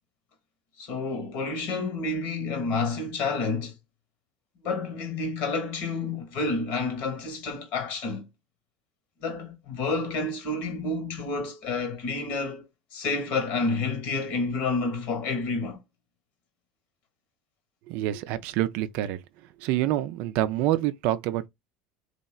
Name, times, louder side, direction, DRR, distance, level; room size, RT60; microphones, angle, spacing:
voice 1, 0.8-3.7 4.6-8.2 9.2-12.6 12.9-15.8, left 3 dB, 60° left, 1.1 m, -29 dB
voice 2, 17.9-19.2 19.6-21.5, right 14 dB, 60° right, 0.3 m, -27 dB
2.8 x 2.3 x 2.2 m
hypercardioid pair, 80°, 3 cm